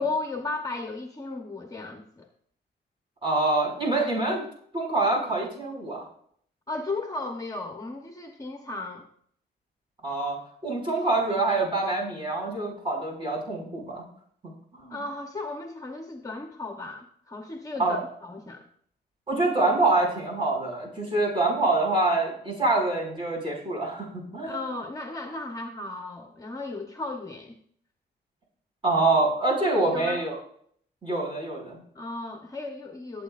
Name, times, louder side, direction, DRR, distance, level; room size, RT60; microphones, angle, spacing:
voice 1, 0.0-2.3 6.7-9.1 14.9-18.7 24.4-27.6 29.8-30.2 31.9-33.2, left 3 dB, 20° left, 4 dB, 1.0 m, -35 dB
voice 2, 3.2-4.4 4.7-6.0 10.0-10.4 10.6-14.0 14.7-15.0 17.8-18.0 19.3-24.6 28.8-30.4 31.0-31.8, right 2 dB, 30° right, -3 dB, 5.6 m, -25 dB
19.0 x 8.4 x 2.5 m, 0.64 s
cardioid pair, 100°, 18 cm